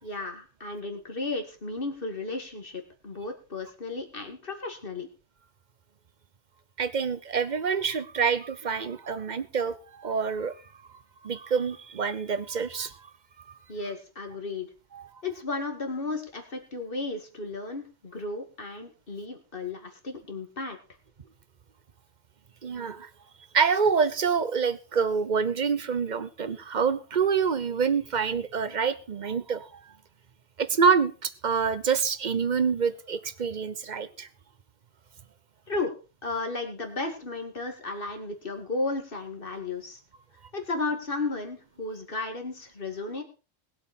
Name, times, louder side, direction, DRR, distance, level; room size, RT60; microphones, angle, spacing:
voice 1, 0.0-5.1 13.7-14.7 15.2-20.8 35.7-35.9 36.2-40.0 40.5-43.2, left 3 dB, 55° left, 5 dB, 2.5 m, -34 dB
voice 2, 6.8-10.6 11.2-12.9 14.9-15.1 22.6-23.1 23.5-29.8 30.6-34.3, right 6 dB, 45° right, 15 dB, 1.0 m, -26 dB
20.5 x 7.9 x 4.4 m, 0.33 s
omnidirectional pair, 1.1 m